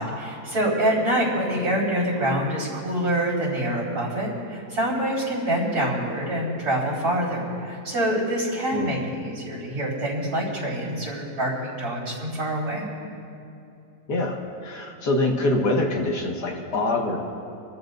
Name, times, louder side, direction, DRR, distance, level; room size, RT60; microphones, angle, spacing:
voice 1, 0.0-12.8, right 1 dB, 65° right, -6 dB, 4.5 m, -26 dB
voice 2, 14.1-17.2, left 2 dB, 85° left, -1 dB, 2.3 m, -25 dB
26.5 x 14.0 x 2.7 m, 2.7 s
omnidirectional pair, 1.7 m